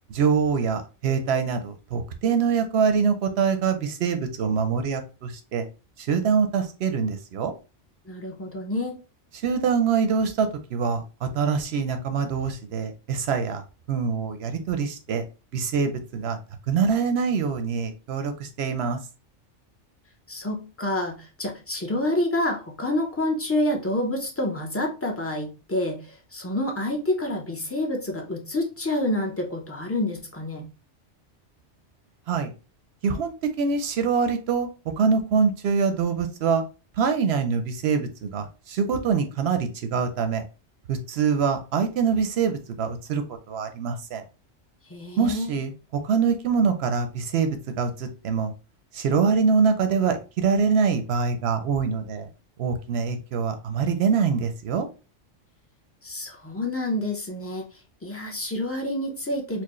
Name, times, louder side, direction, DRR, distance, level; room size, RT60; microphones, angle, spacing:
voice 1, 0.1-5.6 6.0-7.5 9.4-13.6 13.9-15.2 15.5-16.4 16.7-19.0 32.3-32.5 33.0-34.7 35.0-36.6 37.0-40.4 40.9-44.2 45.2-48.5 48.9-52.3 52.6-54.9, right 5 dB, 65° right, 7 dB, 0.8 m, -24 dB
voice 2, 8.1-9.0 20.3-30.6 44.9-45.5 56.0-57.7 58.0-59.6, left 1 dB, 15° left, 1 dB, 0.5 m, -28 dB
4.4 x 2.1 x 3.0 m, 0.32 s
omnidirectional pair, 1.2 m